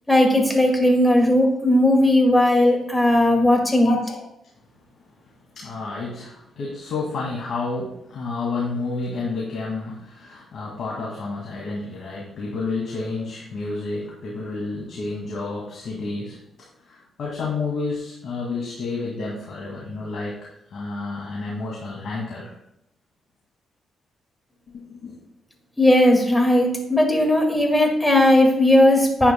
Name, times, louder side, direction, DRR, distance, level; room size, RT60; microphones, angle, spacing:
voice 1, 0.1-4.0 25.8-29.3, left 1 dB, 10° left, 2 dB, 2.0 m, -17 dB
voice 2, 3.8-4.2 5.5-22.5 24.7-25.2, left 3 dB, 65° left, -4 dB, 2.3 m, -30 dB
10.5 x 8.7 x 2.3 m, 0.79 s
cardioid pair, 100°, 0 cm